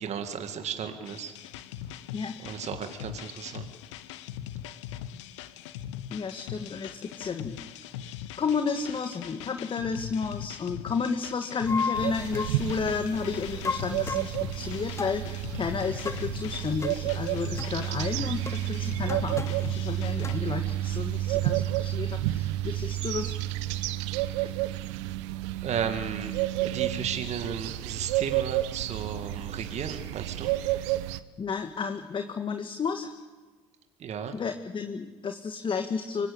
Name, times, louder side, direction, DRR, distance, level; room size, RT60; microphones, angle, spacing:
voice 1, 0.0-1.3 2.4-3.7 25.6-26.3 26.6-30.5 34.0-34.4, right 7 dB, 45° right, 6 dB, 2.1 m, -34 dB
sound 1, 1.0-20.3, left 10 dB, 80° left, 1.0 m, -41 dB
voice 2, 6.1-7.6 8.4-23.3 31.4-33.1 34.3-36.3, left 5 dB, 35° left, 6 dB, 1.8 m, -32 dB
sound 2, 11.7-12.6 13.6-14.4 15.0-15.2 16.0-16.3 16.8-17.0 17.6-17.7 18.5-18.6 19.1-19.7 20.2-20.4, left 5 dB, 20° left, 1.2 m, -33 dB
sound 3, 11.9-31.2, right 15 dB, 75° right, 0.9 m, -31 dB
25.0 x 19.0 x 8.6 m, 1.3 s
hypercardioid pair, 65°, 15 cm